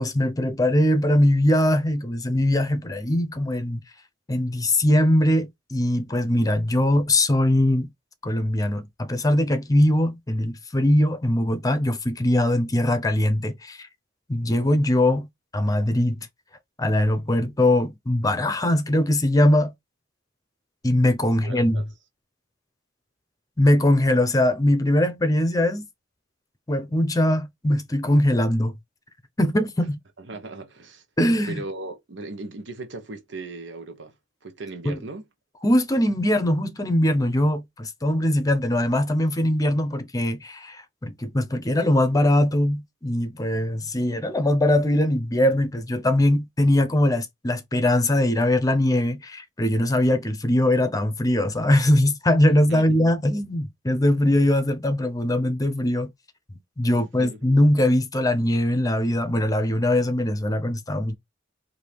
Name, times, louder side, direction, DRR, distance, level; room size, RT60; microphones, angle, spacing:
voice 1, 0.0-3.8 4.3-7.9 8.2-13.9 14.3-15.3 15.5-16.2 16.8-19.7 20.8-21.8 23.6-25.9 26.7-28.7 29.4-30.0 31.2-31.6 34.8-35.0 35.6-56.1 56.8-61.1, left 1 dB, 20° left, 0.8 m, -21 dB
voice 2, 21.4-21.8 30.2-31.0 31.5-34.1 34.4-35.2 52.5-52.9 56.9-57.4, right 2 dB, 70° right, 1.1 m, -37 dB
4.7 x 2.7 x 3.4 m
head